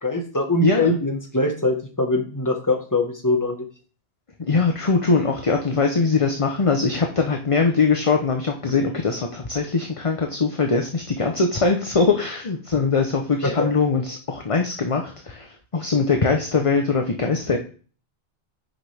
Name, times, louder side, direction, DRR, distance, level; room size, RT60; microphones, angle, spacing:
voice 1, 0.0-3.6 13.4-13.7, left 2 dB, 20° left, 3 dB, 1.5 m, -22 dB
voice 2, 4.4-17.6, left 4 dB, 35° left, 3 dB, 0.9 m, -21 dB
10.5 x 6.5 x 3.5 m, 0.40 s
omnidirectional pair, 1.1 m